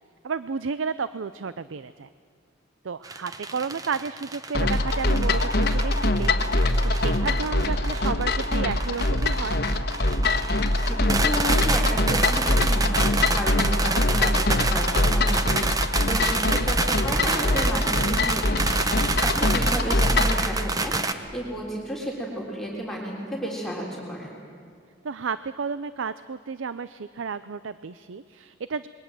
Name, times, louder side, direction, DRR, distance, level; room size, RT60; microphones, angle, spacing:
voice 1, 0.2-2.1 2.8-9.6 16.4-16.7 25.0-28.9, right 5 dB, 70° right, 14 dB, 0.5 m, -32 dB
sound 1, 3.0-21.1, right 3 dB, 20° right, 0.9 m, -28 dB
sound 2, 4.5-20.4, left 2 dB, 55° left, 1.4 m, -23 dB
voice 2, 10.8-15.8 16.1-24.3, equal, ahead, -3 dB, 3.5 m, -32 dB
27.0 x 21.5 x 7.7 m, 2.2 s
head